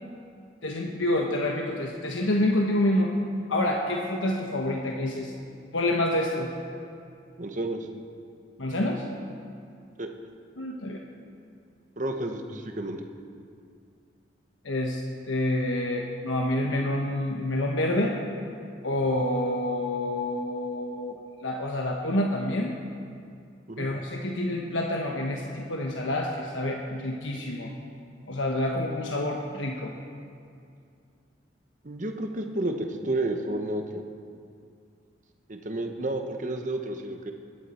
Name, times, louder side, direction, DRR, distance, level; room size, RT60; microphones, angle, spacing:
voice 1, 0.6-3.1 3.5-5.3 5.7-6.5 8.6-9.0 10.6-11.0 14.6-15.0 15.3-18.2 18.8-21.2 21.4-22.7 23.8-27.7 28.3-29.9, left 1 dB, 80° left, 0 dB, 1.1 m, -27 dB
voice 2, 7.4-7.9 10.0-10.1 12.0-13.0 23.7-23.9 31.8-34.0 35.5-37.3, right 1 dB, 40° right, 4 dB, 1.1 m, -31 dB
21.0 x 11.0 x 4.4 m, 2.3 s
head